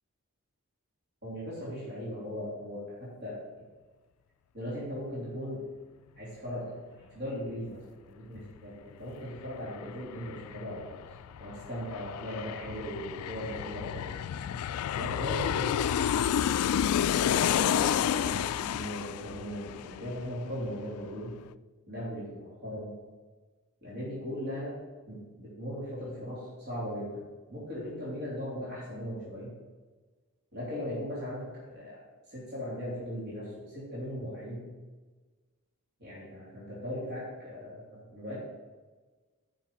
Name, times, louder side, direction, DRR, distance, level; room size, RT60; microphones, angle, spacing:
voice 1, 1.2-3.4 4.5-5.6 6.2-6.7 7.0-7.8 8.1-10.8 11.4-14.1 14.9-15.8 16.2-21.4 21.9-22.9 23.8-24.7 25.1-27.2 27.5-29.5 30.5-32.0 32.3-34.7 36.0-38.3, equal, 55° right, -7 dB, 3.0 m, -38 dB
Aircraft, 9.0-9.1 9.4-20.7 21.0-21.1, left 9 dB, 85° left, 0.3 m, -30 dB
7.3 x 5.9 x 7.0 m, 1.3 s
head